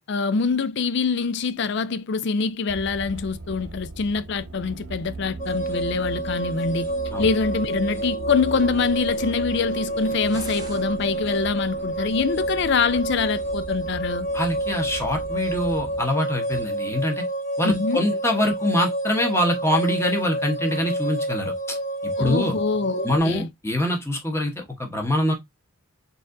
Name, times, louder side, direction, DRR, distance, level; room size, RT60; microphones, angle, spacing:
voice 1, 0.1-6.9 7.2-14.3 17.6-18.0 22.2-23.5, left 5 dB, 50° left, 0.4 m, -25 dB
sound 1, 2.7-16.0, right 2 dB, 55° right, 0.7 m, -38 dB
sound 2, 5.4-23.2, right 1 dB, 30° left, 1.1 m, -29 dB
sound 3, 9.9-10.9, right 3 dB, 20° right, 0.6 m, -41 dB
voice 2, 14.3-17.2 17.6-21.8 22.0-22.5 23.0-25.3, left 1 dB, 10° left, 1.0 m, -24 dB
4.1 x 3.8 x 2.6 m
head